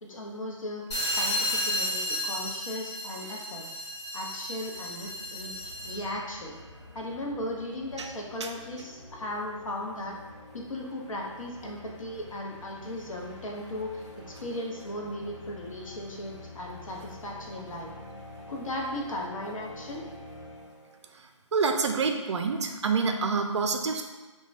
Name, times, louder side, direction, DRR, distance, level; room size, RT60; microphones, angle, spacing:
voice 1, 0.0-0.8 1.2-3.6 4.1-6.6 6.9-10.2 10.5-17.9 18.5-20.0, left 1 dB, 80° left, 0 dB, 0.7 m, -37 dB
sound 1, 0.9-6.1, left 1 dB, 55° left, 1.2 m, -32 dB
sound 2, 3.4-3.5 3.7-21.1, left 1 dB, 35° left, 1.4 m, -48 dB
voice 2, 21.1-24.0, right 4 dB, 60° right, 4 dB, 0.4 m, -27 dB
3.1 x 2.2 x 2.4 m, 1.3 s
hypercardioid pair, 165°, 17 cm